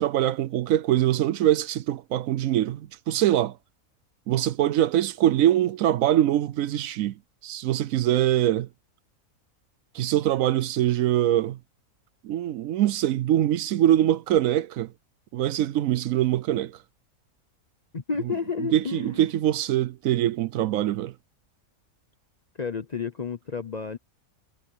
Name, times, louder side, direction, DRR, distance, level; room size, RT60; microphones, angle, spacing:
voice 1, 0.0-3.6 4.3-7.1 7.4-8.7 9.9-11.6 12.2-14.9 15.3-16.8 18.7-21.1, right 12 dB, 70° right, 0.9 m, -23 dB
voice 2, 17.9-19.2 22.6-24.0, left 5 dB, 40° left, 0.6 m, -31 dB
omnidirectional pair, 1.5 m